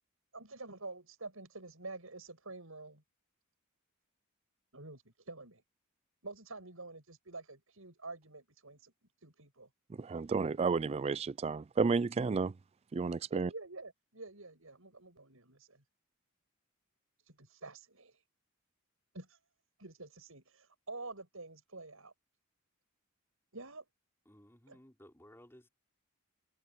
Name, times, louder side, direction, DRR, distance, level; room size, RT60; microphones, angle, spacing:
voice 1, 0.3-3.0 4.7-5.6 6.2-8.9 9.2-9.7 13.3-15.8 17.2-18.2 19.1-19.4 19.8-22.1 23.5-23.9 24.7-24.8, right 3 dB, 75° right, 7.3 m, -48 dB
voice 2, 9.9-12.5 12.9-13.5, right 4 dB, 30° right, 0.3 m, -32 dB
voice 3, 24.3-25.7, equal, 10° left, 4.1 m, -58 dB
head